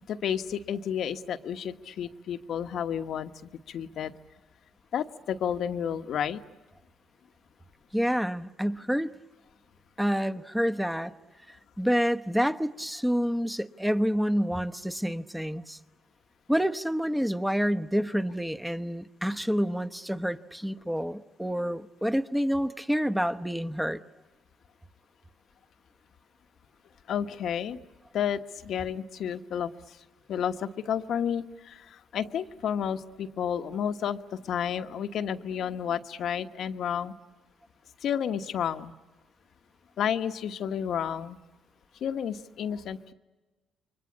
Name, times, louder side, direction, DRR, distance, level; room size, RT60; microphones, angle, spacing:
voice 1, 0.1-3.3 3.7-4.1 4.9-6.4 27.1-27.8 28.1-30.0 30.3-37.1 38.0-38.9 40.0-41.4 42.0-43.1, left 8 dB, 70° left, 1.2 m, -31 dB
voice 2, 7.9-9.1 10.0-11.1 11.5-15.8 16.5-24.0, equal, 5° right, 1.0 m, -28 dB
29.0 x 24.0 x 8.5 m
cardioid pair, 90°, 0 cm